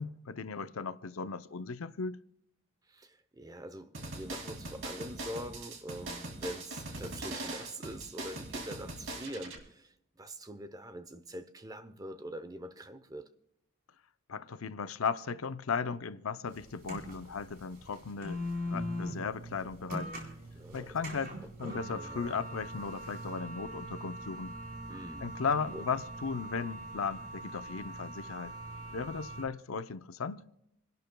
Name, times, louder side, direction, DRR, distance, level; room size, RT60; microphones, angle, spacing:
voice 1, 0.0-2.2 14.3-18.4 18.7-20.1 20.7-24.6 25.2-28.5 28.9-30.4, left 5 dB, 80° left, 0.6 m, -36 dB
voice 2, 2.9-13.3 20.5-21.0 21.6-22.3 24.9-25.3 25.7-25.8, right 1 dB, 15° right, 0.7 m, -44 dB
sound 1, 3.9-9.6, right 2 dB, 65° right, 2.6 m, -41 dB
sound 2, 16.5-29.4, equal, 45° right, 4.0 m, -42 dB
27.5 x 12.0 x 2.3 m
head